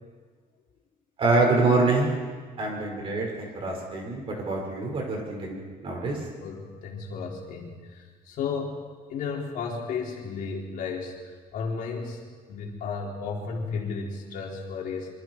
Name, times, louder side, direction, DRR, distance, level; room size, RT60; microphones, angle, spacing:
voice 1, 1.2-2.1 2.6-6.3, right 3 dB, 35° right, 0 dB, 5.6 m, -25 dB
voice 2, 6.4-8.8 9.1-12.2 12.5-15.1, left 5 dB, 65° left, -1 dB, 4.1 m, -33 dB
26.0 x 24.5 x 4.8 m, 1.5 s
cardioid pair, 180°, 15 cm